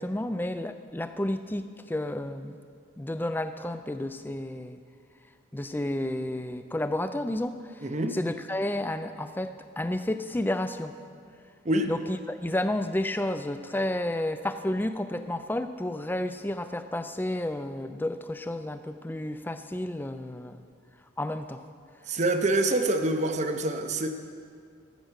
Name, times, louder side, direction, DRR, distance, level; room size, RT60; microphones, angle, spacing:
voice 1, 0.0-2.6 3.0-4.8 5.5-11.0 11.9-20.6 21.2-21.6, left 1 dB, 10° left, 10 dB, 0.4 m, -31 dB
voice 2, 7.8-8.2 11.6-11.9 22.1-24.1, right 2 dB, 35° right, 6 dB, 0.7 m, -26 dB
13.5 x 7.5 x 6.5 m, 2.3 s
head